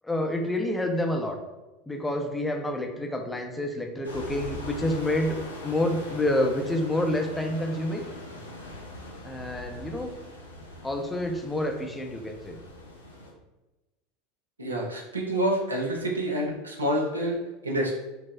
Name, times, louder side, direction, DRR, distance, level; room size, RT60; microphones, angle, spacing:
voice 1, 0.0-1.4 1.9-5.4 5.6-8.0 9.2-10.1 10.8-12.6, left 1 dB, 10° left, 3 dB, 0.4 m, -28 dB
sound 1, 4.0-13.3, left 1 dB, 90° left, 0.5 m, -41 dB
voice 2, 14.6-17.9, right 1 dB, 90° right, 0 dB, 0.5 m, -28 dB
4.5 x 2.0 x 2.3 m, 1.1 s
figure-of-eight pair, 80°, 0 cm